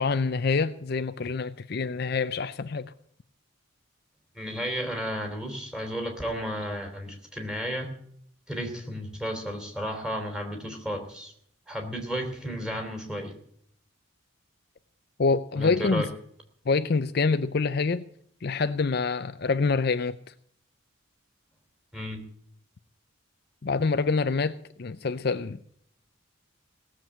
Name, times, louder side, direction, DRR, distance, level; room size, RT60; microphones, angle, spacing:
voice 1, 0.0-2.9 15.2-16.1 16.7-18.0 18.4-20.1 23.6-25.6, left 4 dB, 50° left, 11 dB, 0.5 m, -26 dB
voice 2, 4.3-7.9 8.5-11.3 11.7-13.3 15.5-16.1 21.9-22.2, equal, 5° right, 2 dB, 3.0 m, -33 dB
18.0 x 7.5 x 8.7 m, 0.65 s
head